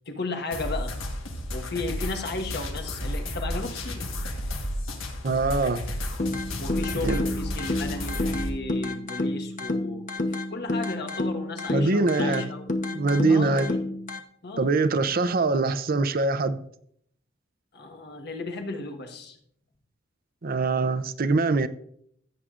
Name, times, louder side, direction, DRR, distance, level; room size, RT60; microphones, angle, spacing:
voice 1, 0.1-1.0 1.5-4.1 6.6-10.1 10.5-12.6 13.3-13.9 14.4-14.7 17.7-19.4, left 2 dB, 60° left, 1.3 m, -34 dB
sound 1, 0.5-8.5, left 1 dB, 90° left, 1.5 m, -32 dB
voice 2, 5.2-5.8 6.9-7.2 11.7-12.5 12.9-13.7 14.6-16.6 20.4-21.7, right 3 dB, 50° right, 0.6 m, -23 dB
sound 2, 6.2-14.2, left 2 dB, 40° left, 0.9 m, -30 dB
16.0 x 8.1 x 2.5 m
head